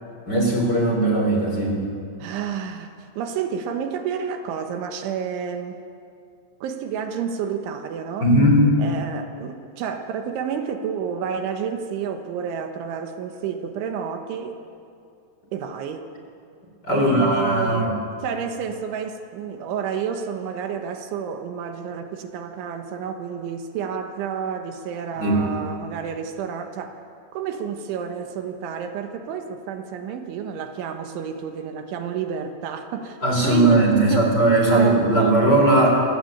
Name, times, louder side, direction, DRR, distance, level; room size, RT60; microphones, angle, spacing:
voice 1, 0.3-1.8 8.2-8.8 16.8-17.9 25.2-25.4 33.2-35.9, right 1 dB, 25° left, 0 dB, 3.7 m, -18 dB
voice 2, 2.2-5.8 6.6-8.3 8.8-14.6 15.5-16.1 16.9-27.0 27.3-34.3 34.7-35.4, right 7 dB, 80° right, 5 dB, 3.7 m, -30 dB
26.0 x 17.5 x 8.8 m, 2.4 s
omnidirectional pair, 5.5 m